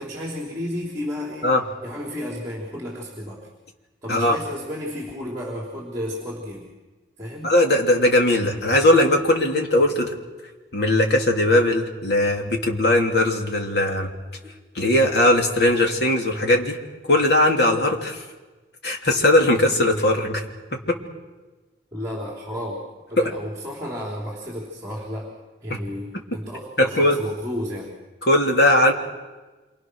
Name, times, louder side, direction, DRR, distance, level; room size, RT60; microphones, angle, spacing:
voice 1, 0.0-1.5 1.8-3.5 4.0-6.7 7.2-7.5 14.4-14.5 21.9-22.8 23.1-25.3 25.6-28.0, equal, 15° right, -2 dB, 3.9 m, -32 dB
voice 2, 7.4-10.1 10.7-14.1 14.7-16.8 17.1-18.2 18.8-20.4 20.7-21.0 23.2-23.3 26.8-27.2 28.2-28.9, left 1 dB, 60° left, 1 dB, 3.2 m, -19 dB
27.0 x 25.0 x 6.5 m, 1.2 s
head